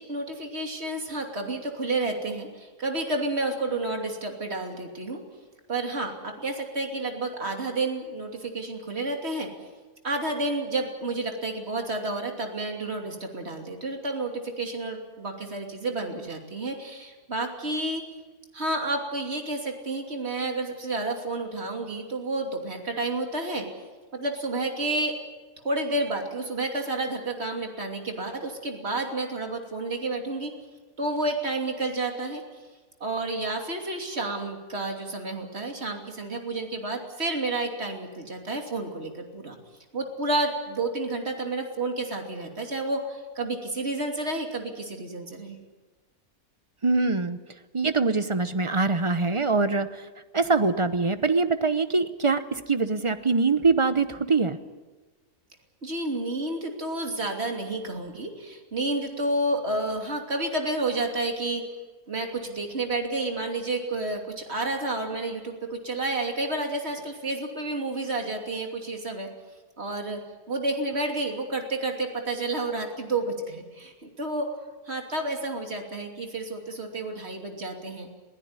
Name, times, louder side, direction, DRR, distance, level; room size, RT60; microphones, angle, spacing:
voice 1, 0.0-5.2 5.7-9.5 10.0-18.0 18.5-23.7 24.1-25.2 25.6-30.5 31.0-32.4 33.0-39.6 39.9-45.6 55.8-61.6 62.1-69.3 69.8-70.2 70.5-74.6 74.9-78.1, right 2 dB, 45° right, 3 dB, 3.1 m, -30 dB
voice 2, 46.8-47.4 47.7-50.0 50.3-54.6, right 3 dB, 30° right, 11 dB, 0.7 m, -23 dB
21.5 x 16.0 x 9.7 m, 1.3 s
omnidirectional pair, 1.6 m